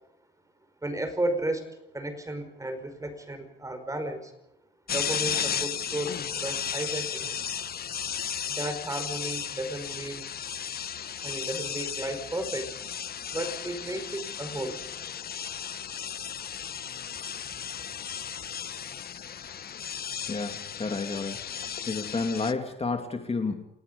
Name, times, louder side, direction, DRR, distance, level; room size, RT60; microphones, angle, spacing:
voice 1, 0.8-1.7 1.9-4.3 4.9-7.4 8.4-10.3 11.2-12.7 13.3-14.8, right 1 dB, 15° right, 8 dB, 5.2 m, -33 dB
sound 1, 4.9-22.5, left 8 dB, 50° left, 1.1 m, -35 dB
voice 2, 20.3-21.4 21.8-23.6, left 4 dB, 30° left, 5 dB, 2.9 m, -30 dB
29.0 x 18.0 x 5.5 m, 0.88 s
cardioid pair, 90°, 20 cm